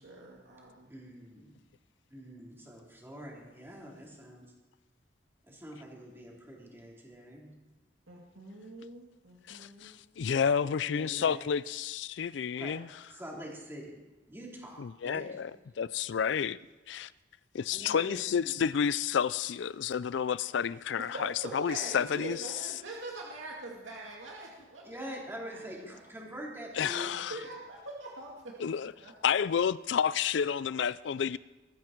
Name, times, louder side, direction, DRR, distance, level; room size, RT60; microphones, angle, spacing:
voice 1, 0.0-0.9 8.1-9.9 21.1-25.1 25.5-26.0 27.3-28.7 29.0-29.1, right 2 dB, 90° right, 2.4 m, -44 dB
voice 2, 0.9-1.6 2.1-4.4 5.4-7.5 10.3-11.4 12.6-12.7 13.1-14.0 14.3-15.4 17.7-18.5 24.8-27.1, equal, 10° right, 3.9 m, -45 dB
voice 3, 9.5-12.9 14.8-15.5 15.8-16.6 16.9-17.1 17.5-22.4 26.7-27.4 28.6-28.9 29.2-31.4, left 7 dB, 65° left, 0.4 m, -30 dB
20.5 x 14.0 x 4.6 m
head